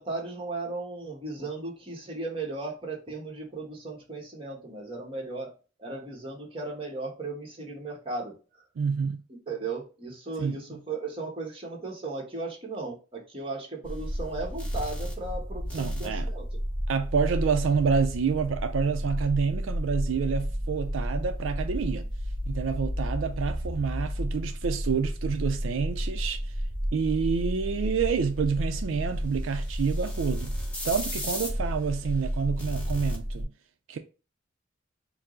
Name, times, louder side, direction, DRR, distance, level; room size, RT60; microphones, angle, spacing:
voice 1, 0.0-5.5 5.8-8.3 9.5-16.4, right 3 dB, 30° right, 1.1 m, -36 dB
voice 2, 8.8-9.2 10.4-10.6 15.7-16.3 16.9-22.0 22.5-26.4 26.9-30.6 30.8-33.5 33.9-34.0, right 5 dB, 85° right, 0.4 m, -28 dB
sound 1, 13.8-33.4, equal, 5° left, 0.8 m, -32 dB
4.5 x 2.0 x 3.7 m
head